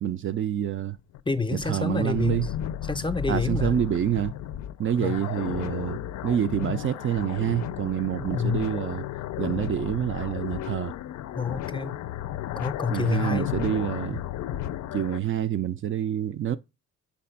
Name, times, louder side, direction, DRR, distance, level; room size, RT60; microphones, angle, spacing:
voice 1, 0.0-1.0 1.6-2.5 3.3-4.3 4.8-9.0 9.4-10.9 12.9-14.2 14.9-16.6, right 10 dB, 45° right, 0.4 m, -27 dB
sound 1, 1.0-15.2, left 12 dB, 65° left, 0.4 m, -34 dB
voice 2, 1.3-2.4 2.9-3.7 5.0-5.2 8.3-8.6 11.3-11.9 12.6-13.5, left 4 dB, 15° left, 0.5 m, -28 dB
4.7 x 4.2 x 5.7 m
cardioid pair, 90°, 30 cm